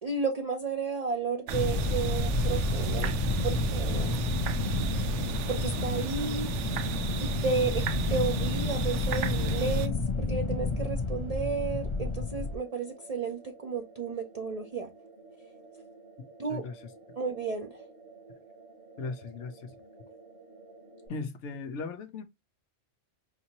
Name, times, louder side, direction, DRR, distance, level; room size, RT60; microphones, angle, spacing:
voice 1, 0.0-3.1 3.4-4.2 5.5-6.5 7.2-14.9 16.4-16.6 17.2-17.8, right 4 dB, 40° right, 0.7 m, -33 dB
sound 1, 1.1-21.1, right 3 dB, 65° right, 2.5 m, -52 dB
sound 2, 1.5-12.6, left 3 dB, 35° left, 0.5 m, -30 dB
sound 3, 1.5-9.9, right 9 dB, 85° right, 0.9 m, -34 dB
voice 2, 16.5-16.8 19.0-19.8 21.1-22.2, left 4 dB, 80° left, 1.1 m, -37 dB
5.0 x 2.8 x 2.9 m
omnidirectional pair, 1.2 m